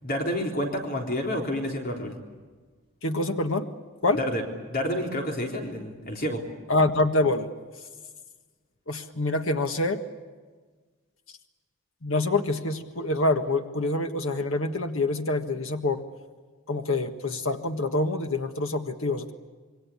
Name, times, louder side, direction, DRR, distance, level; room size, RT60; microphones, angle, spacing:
voice 1, 0.0-2.1 4.2-6.4, equal, 45° left, 2 dB, 3.8 m, -29 dB
voice 2, 3.0-3.7 4.0-4.2 6.7-7.5 8.9-10.0 12.0-16.1 16.7-19.3, left 2 dB, 70° left, 6 dB, 1.6 m, -26 dB
27.0 x 23.5 x 8.6 m, 1.4 s
head